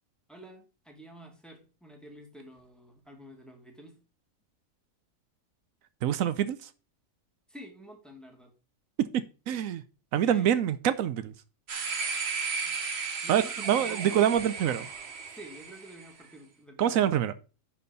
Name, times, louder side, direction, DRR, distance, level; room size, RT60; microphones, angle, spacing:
voice 1, 0.3-4.0 7.5-8.5 10.2-10.6 12.7-12.8 13.2-14.1 15.3-17.1, right 1 dB, ahead, 2.2 m, -49 dB
voice 2, 6.0-6.7 9.0-9.8 10.1-11.3 13.3-14.9 16.8-17.3, right 10 dB, 85° right, 1.1 m, -26 dB
sound 1, 11.7-16.0, right 5 dB, 55° right, 1.3 m, -34 dB
10.0 x 4.3 x 5.2 m
omnidirectional pair, 1.4 m